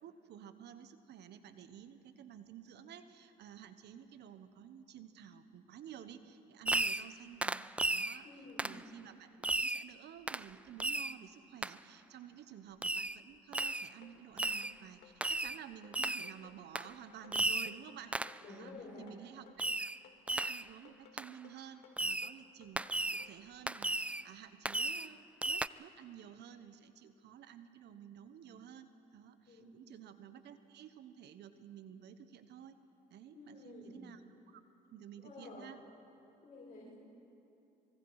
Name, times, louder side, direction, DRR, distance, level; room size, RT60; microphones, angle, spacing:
voice 1, 0.0-8.2 8.6-18.2 18.5-18.7 19.0-19.9 20.3-29.4 29.7-32.7 33.1-34.2 34.5-34.6 34.9-35.8, right 9 dB, 65° right, 11 dB, 1.2 m, -52 dB
Fireworks, 6.6-7.1 7.4-8.2 8.6-8.8 9.4-9.9 10.3-10.5 10.8-11.2 11.6-11.7 12.8-13.2 13.5-13.9 14.4-14.7 15.2-15.6 15.9-16.3 16.7-16.9 17.3-17.8 18.1-18.4 19.6-20.0 20.3-20.7 21.2-21.3 22.0-22.3 22.8-23.3 23.7-24.2 24.6-25.1 25.4-25.7, right 2 dB, 5° right, 0.4 m, -35 dB
voice 2, 8.2-8.7 18.4-19.1 29.5-29.7 33.3-34.1 35.2-35.9 36.4-36.9, left 2 dB, 45° left, -6 dB, 6.3 m, -51 dB
sound 1, 13.6-23.4, left 8 dB, 65° left, 2.4 m, -61 dB
24.5 x 22.5 x 4.9 m, 2.8 s
supercardioid pair, 70°, 19 cm